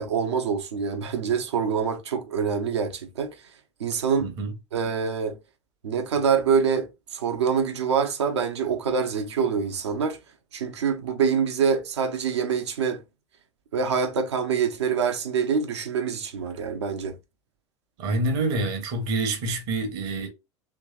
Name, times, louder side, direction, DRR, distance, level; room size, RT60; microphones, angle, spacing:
voice 1, 0.0-3.3 3.8-4.3 4.7-5.4 5.8-10.2 10.5-13.0 13.7-17.2, right 6 dB, 70° right, 0.8 m, -25 dB
voice 2, 4.2-4.5 18.0-20.3, right 2 dB, 55° right, 1.2 m, -27 dB
3.3 x 3.1 x 2.4 m
figure-of-eight pair, 80°, 15 cm